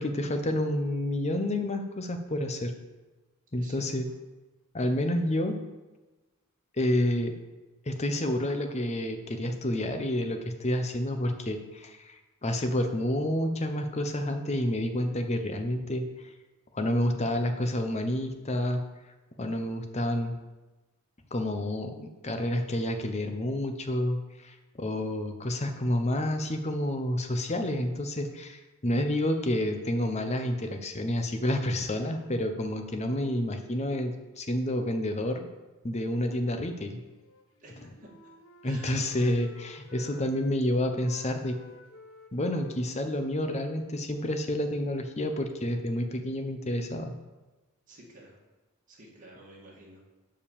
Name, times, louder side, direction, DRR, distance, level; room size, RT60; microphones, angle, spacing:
voice 1, 0.0-2.7 3.5-4.1 4.7-5.6 6.8-7.3 7.9-16.0 16.7-18.8 19.4-20.4 21.3-35.5 35.8-37.0 38.6-41.6 42.3-47.1, left 1 dB, 30° left, 6 dB, 0.8 m, -29 dB
voice 2, 3.6-3.9 37.6-38.1 38.6-39.2 47.9-48.4 48.9-50.0, right 1 dB, 35° right, -4 dB, 2.0 m, -51 dB
Wind instrument woodwind instrument, 37.2-40.6 40.9-44.8, left 2 dB, 65° left, 1.0 m, -53 dB
7.4 x 5.2 x 7.1 m, 1.1 s
head